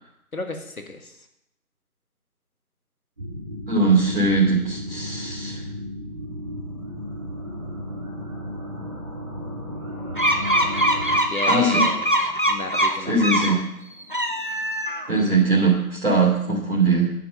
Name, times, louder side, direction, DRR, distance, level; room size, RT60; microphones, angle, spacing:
voice 1, 0.3-1.2 11.3-13.4, left 2 dB, 65° left, 5 dB, 1.9 m, -33 dB
sound 1, 3.2-11.2, equal, 20° right, 2.3 m, -34 dB
voice 2, 3.7-5.6 11.5-11.8 13.1-13.6 15.1-17.1, right 3 dB, 45° right, -5 dB, 2.8 m, -20 dB
sound 2, 10.2-13.6 14.0-15.2, right 1 dB, 35° left, 0.7 m, -22 dB
9.8 x 8.2 x 5.3 m, 0.80 s
figure-of-eight pair, 170°, 45 cm